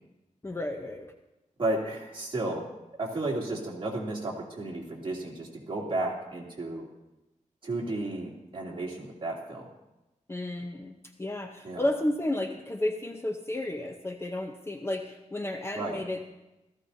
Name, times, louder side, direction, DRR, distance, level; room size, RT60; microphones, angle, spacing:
voice 1, 0.4-1.1 10.3-16.2, left 1 dB, 20° left, 4 dB, 0.7 m, -32 dB
voice 2, 1.6-2.7 3.0-6.9 7.6-9.7 11.6-11.8 15.7-16.0, right 2 dB, 40° right, -3 dB, 2.9 m, -33 dB
17.0 x 14.0 x 2.8 m, 0.98 s
wide cardioid pair, 135°, 13 cm